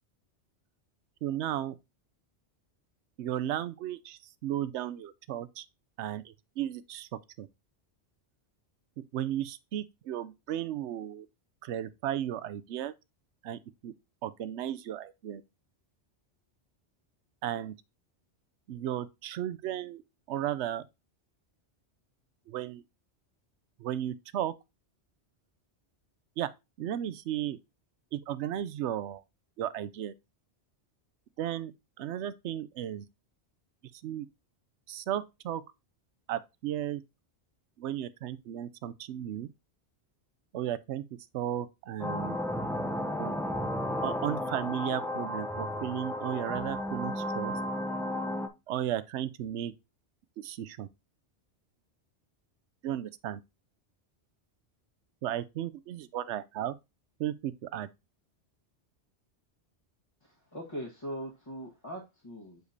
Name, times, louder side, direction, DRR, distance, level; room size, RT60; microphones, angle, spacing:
voice 1, 1.2-1.8 3.2-5.7 6.0-7.1 7.4-7.5 9.0-11.3 11.6-12.9 13.4-13.9 14.2-15.4 17.4-17.7 18.7-20.0 20.3-20.9 22.5-22.8 23.8-24.5 26.4-26.5 26.8-27.6 28.1-29.2 29.6-30.1 31.4-31.7 32.0-33.1 34.0-34.3 34.9-35.6 36.3-37.0 37.8-39.5 40.5-41.0 41.3-42.4 43.2-43.3 44.0-47.5 48.7-49.7 50.4-50.9 52.8-53.4 55.2-56.8 57.2-57.9, right 11 dB, 80° right, 0.9 m, -34 dB
sound 1, 42.0-48.5, left 1 dB, 5° left, 0.4 m, -33 dB
voice 2, 60.5-62.6, equal, 25° left, 1.4 m, -40 dB
7.9 x 5.0 x 2.6 m
omnidirectional pair, 1.2 m